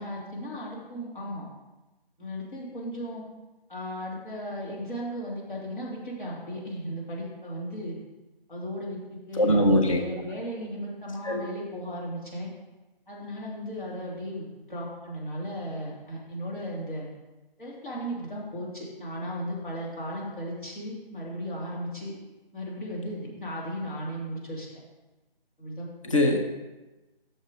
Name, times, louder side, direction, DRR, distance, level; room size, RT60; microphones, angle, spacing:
voice 1, 0.0-1.4 2.2-3.2 3.7-8.0 8.5-12.5 13.1-17.1 17.6-22.1 22.5-24.7 25.6-25.9, equal, 60° left, -5 dB, 3.1 m, -36 dB
voice 2, 9.4-10.0 11.2-11.5 26.0-26.4, left 1 dB, 35° left, 3 dB, 0.8 m, -22 dB
7.5 x 6.5 x 5.0 m, 1.1 s
figure-of-eight pair, 165°, 29 cm